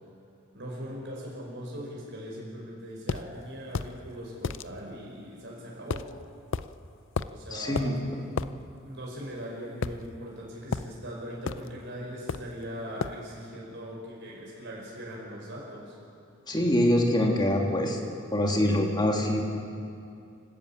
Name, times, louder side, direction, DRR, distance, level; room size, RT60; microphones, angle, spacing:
voice 1, 0.5-6.1 7.3-8.0 8.4-16.0, equal, 60° right, -3 dB, 5.2 m, -40 dB
sound 1, 3.1-3.3 3.7-3.9 4.4-4.7 5.9-6.1 6.5-6.7 7.2-7.4 7.8-7.9 8.4-8.5 9.8-10.4 10.7-10.9 11.5-11.7 12.3-12.6 13.0-13.2, left 5 dB, 65° left, 0.5 m, -32 dB
voice 2, 7.5-8.0 16.5-18.0 18.3-19.4, left 1 dB, 20° left, 0 dB, 2.6 m, -24 dB
28.5 x 12.5 x 8.6 m, 2.4 s
head